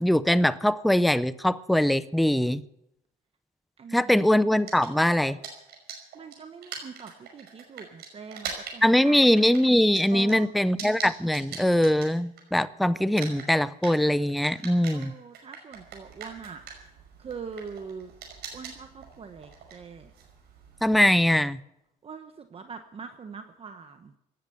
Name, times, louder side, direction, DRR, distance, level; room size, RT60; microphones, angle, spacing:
voice 1, 0.0-2.6 3.9-5.4 8.8-15.1 20.8-21.6, left 1 dB, ahead, 15 dB, 0.5 m, -22 dB
voice 2, 3.8-4.3 6.1-9.4 10.1-10.7 14.9-16.6 17.2-18.1 18.5-20.1 22.0-24.1, right 5 dB, 35° right, 7 dB, 1.2 m, -43 dB
sound 1, 4.5-12.7 13.0-21.2, right 6 dB, 75° right, 5.6 m, -42 dB
17.5 x 10.5 x 8.0 m, 0.84 s
cardioid pair, 110°, 17 cm